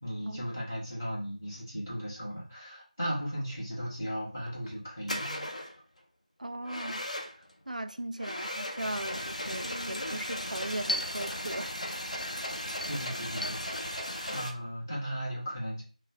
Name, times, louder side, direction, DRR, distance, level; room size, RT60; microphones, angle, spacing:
voice 1, 0.0-5.5 12.6-13.9 14.3-15.8, equal, 25° left, 1.5 m, -36 dB
sound 1, 4.5-4.7 5.1-5.8 6.6-7.5 8.2-14.5, left 1 dB, 60° left, 0.8 m, -37 dB
voice 2, 6.4-7.1 7.7-12.4, right 1 dB, 75° right, 0.3 m, -38 dB
sound 2, 8.8-14.4, left 1 dB, 80° left, 0.4 m, -41 dB
5.6 x 2.1 x 3.1 m
figure-of-eight pair, 175°, 4 cm